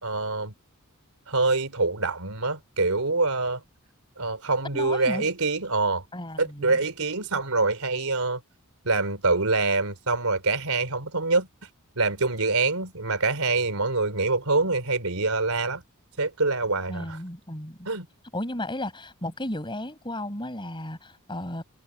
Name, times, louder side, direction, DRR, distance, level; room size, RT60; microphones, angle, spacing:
voice 1, 0.0-0.5 1.3-3.6 4.2-6.0 6.4-8.4 8.9-11.5 12.0-15.8 16.2-17.2 17.9-18.1, right 3 dB, 85° right, 3.7 m, -25 dB
voice 2, 4.7-5.3 6.1-6.8 16.9-17.9 18.3-21.6, left 1 dB, 20° left, 6.6 m, -34 dB
head